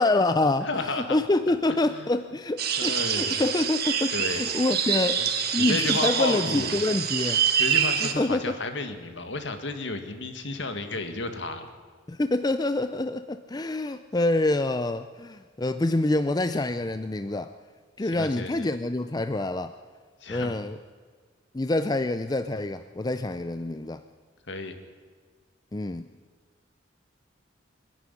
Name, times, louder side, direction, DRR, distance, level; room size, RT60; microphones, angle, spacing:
voice 1, 0.0-5.2 5.5-7.4 8.0-8.6 12.1-17.5 18.0-19.7 20.3-20.8 21.5-24.0 25.7-26.1, left 2 dB, 20° left, 10 dB, 0.5 m, -26 dB
voice 2, 0.6-1.2 1.7-2.1 2.8-3.4 4.1-4.7 5.2-5.3 5.6-6.8 7.6-11.7 18.0-18.7 20.2-20.5 24.5-24.8, left 2 dB, 65° left, 7 dB, 2.0 m, -32 dB
sound 1, 2.6-8.1, right 8 dB, 55° right, 1.7 m, -26 dB
24.0 x 11.0 x 10.0 m, 1.5 s
head